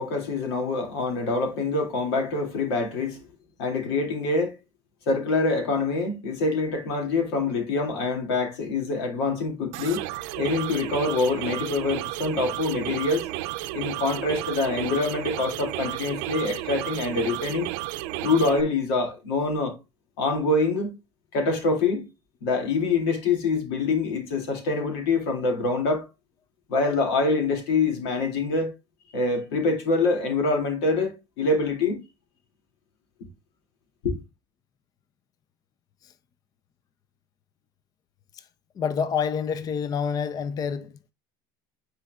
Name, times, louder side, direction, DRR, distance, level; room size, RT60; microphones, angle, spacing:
voice 1, 0.0-3.2 3.6-4.6 5.1-10.1 10.4-13.3 13.7-17.7 18.2-19.8 20.2-21.0 21.3-22.0 22.4-26.1 26.7-28.7 29.1-32.0 34.0-34.2, left 3 dB, 90° left, 2.4 m, -25 dB
sound 1, 9.7-18.6, right 16 dB, 70° right, 0.6 m, -32 dB
voice 2, 38.8-41.1, left 6 dB, 30° left, 0.5 m, -28 dB
9.0 x 4.4 x 2.4 m
cardioid pair, 135°, 13 cm